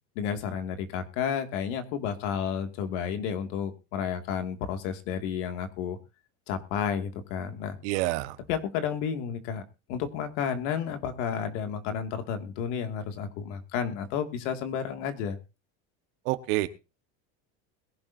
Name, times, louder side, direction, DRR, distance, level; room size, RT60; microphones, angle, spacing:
voice 1, 0.2-6.0 6.5-7.8 8.5-9.6 9.9-15.4, left 7 dB, 80° left, 7 dB, 2.2 m, -31 dB
voice 2, 7.8-8.4 16.3-16.7, right 18 dB, 80° right, 11 dB, 1.3 m, -27 dB
21.5 x 11.5 x 2.6 m, 0.29 s
cardioid pair, 160°, 35 cm